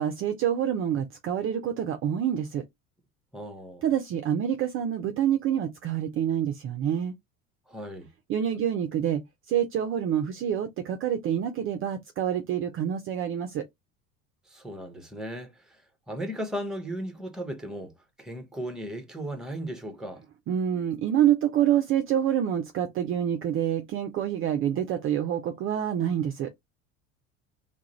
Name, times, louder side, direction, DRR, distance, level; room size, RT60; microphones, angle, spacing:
voice 1, 0.0-2.6 3.8-7.1 8.3-9.2 9.5-13.6 20.5-26.5, right 10 dB, 35° right, 0.4 m, -27 dB
voice 2, 3.3-3.8 7.7-8.1 14.5-15.8 16.1-17.9 18.2-20.2, equal, ahead, 0.7 m, -36 dB
2.4 x 2.1 x 2.9 m
hypercardioid pair, 70°, 40 cm